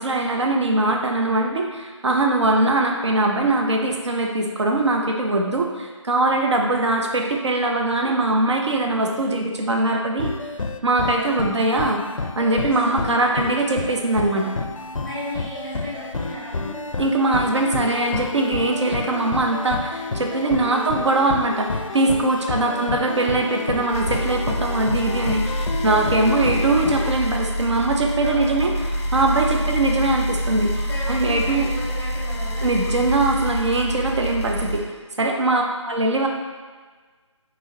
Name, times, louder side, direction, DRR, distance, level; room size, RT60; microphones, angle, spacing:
voice 1, 0.0-10.3 10.8-12.0 12.4-14.5 17.0-28.7 29.1-30.7 31.1-31.7 32.6-34.8 35.2-36.3, right 2 dB, 60° right, 1 dB, 0.6 m, -21 dB
sound 1, 10.2-27.1, left 3 dB, 85° left, 0.4 m, -30 dB
voice 2, 11.1-11.5 12.5-13.3 15.0-16.8 20.5-21.0 22.3-22.7 26.1-26.4 28.2-28.8 29.4-29.7 30.7-32.7 35.4-35.8, equal, 10° right, -10 dB, 1.2 m, -36 dB
sound 2, 23.9-34.8, equal, 10° left, 0.6 m, -26 dB
5.4 x 3.1 x 2.7 m, 1.4 s
figure-of-eight pair, 155°, 16 cm